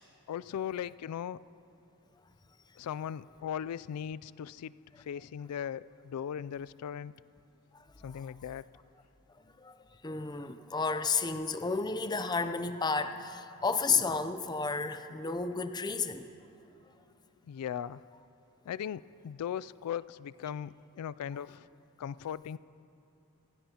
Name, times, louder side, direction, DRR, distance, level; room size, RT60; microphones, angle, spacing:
voice 1, 0.3-1.4 2.8-7.1 8.0-8.7 17.5-18.0 18.7-21.7 22.0-22.6, left 9 dB, 90° left, 18 dB, 0.3 m, -38 dB
voice 2, 10.0-16.3, left 4 dB, 20° left, 10 dB, 0.5 m, -32 dB
28.0 x 16.0 x 2.9 m, 2.7 s
head